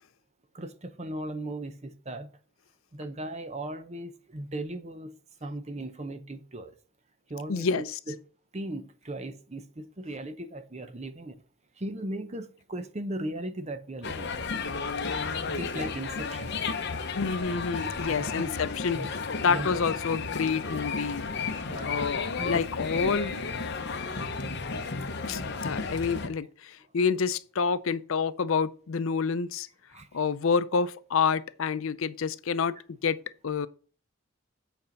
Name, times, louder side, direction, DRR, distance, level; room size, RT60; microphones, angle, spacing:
voice 1, 0.5-2.3 2.9-5.1 5.4-6.8 7.3-8.2 8.5-11.4 11.8-14.4 15.2-16.5 18.1-18.3 18.9-19.1 19.5-19.7 21.6-22.1 22.4-22.6 22.9-23.4 29.9-30.1, right 1 dB, 30° right, 0.7 m, -37 dB
voice 2, 7.5-7.8 17.2-19.0 19.4-21.3 21.6-23.3 25.3-29.7 30.1-32.8 33.0-33.2 33.4-33.7, left 5 dB, 70° left, 0.5 m, -28 dB
sound 1, 14.0-26.3, left 4 dB, 50° left, 0.9 m, -33 dB
8.2 x 4.4 x 5.2 m
head